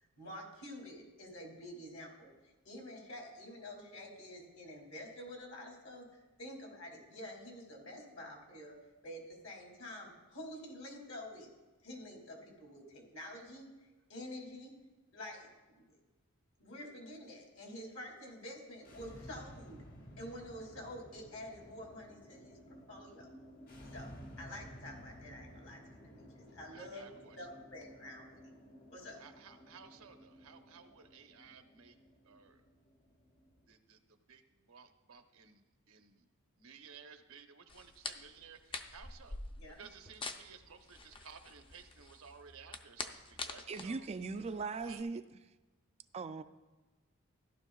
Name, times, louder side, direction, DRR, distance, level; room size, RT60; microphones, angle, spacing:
voice 1, 0.2-8.8 9.0-11.5 11.8-14.7 15.1-15.5 15.7-15.8 16.6-19.8 20.2-22.6 22.9-23.3 23.9-28.4 28.9-29.2 39.6-39.8, left 1 dB, 70° left, 0 dB, 2.7 m, -48 dB
sound 1, 18.8-33.7, equal, 45° left, 1.1 m, -55 dB
voice 2, 26.7-27.5 29.2-32.0 32.2-32.6 33.6-36.2 36.6-39.4 39.8-44.1 44.8-45.0, right 6 dB, 85° right, 6 dB, 0.8 m, -56 dB
sound 2, 37.7-45.0, left 3 dB, 25° left, 0.5 m, -46 dB
voice 3, 43.7-45.2 46.1-46.4, right 4 dB, 30° right, 11 dB, 0.3 m, -39 dB
15.0 x 11.5 x 2.4 m, 1.2 s
head